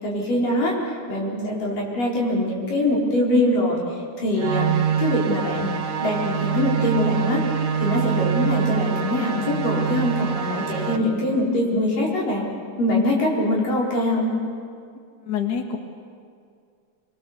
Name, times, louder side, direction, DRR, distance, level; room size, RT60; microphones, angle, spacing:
voice 1, 0.0-3.8 4.2-4.7 5.0-5.7 6.0-7.4 7.8-12.4 12.8-14.3, left 1 dB, 90° left, -3 dB, 6.0 m, -23 dB
sound 1, 4.4-11.0, right 7 dB, 80° right, 3.1 m, -25 dB
voice 2, 15.2-15.8, left 8 dB, 40° left, 4 dB, 1.8 m, -26 dB
26.0 x 22.0 x 7.2 m, 2.2 s
omnidirectional pair, 3.7 m